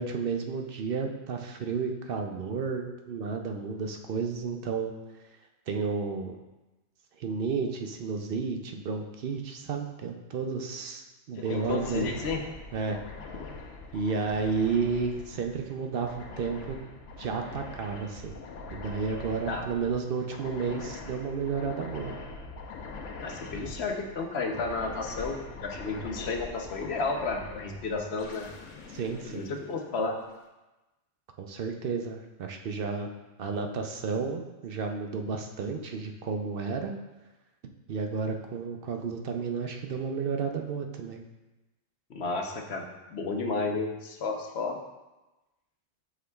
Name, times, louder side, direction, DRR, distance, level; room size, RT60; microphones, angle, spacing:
voice 1, 0.0-4.9 5.7-6.4 7.2-12.1 12.7-13.0 13.9-16.8 17.2-18.4 18.7-22.2 28.9-29.5 31.4-33.1 33.4-36.9 37.9-41.2, right 5 dB, 60° right, 4 dB, 0.7 m, -32 dB
voice 2, 11.3-12.4 19.5-19.7 23.2-28.5 29.3-30.1 42.1-44.8, left 3 dB, 65° left, 2 dB, 1.0 m, -32 dB
sound 1, 11.4-30.3, left 3 dB, 90° left, 1.1 m, -43 dB
8.0 x 5.9 x 2.3 m, 1.1 s
omnidirectional pair, 1.2 m